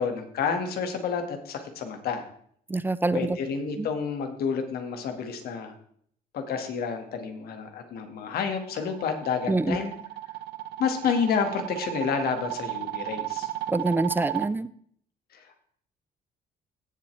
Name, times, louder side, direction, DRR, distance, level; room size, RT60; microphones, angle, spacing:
voice 1, 0.0-2.3 3.1-5.7 6.3-9.9 10.8-13.5 15.3-15.6, left 6 dB, 65° left, 6 dB, 2.0 m, -29 dB
voice 2, 2.7-3.4 3.8-3.9 9.5-9.8 13.7-14.7, right 2 dB, 10° right, 16 dB, 0.4 m, -25 dB
sound 1, 8.3-14.5, right 15 dB, 80° right, 0.7 m, -34 dB
17.0 x 7.5 x 3.4 m, 0.62 s
cardioid pair, 110°, 17 cm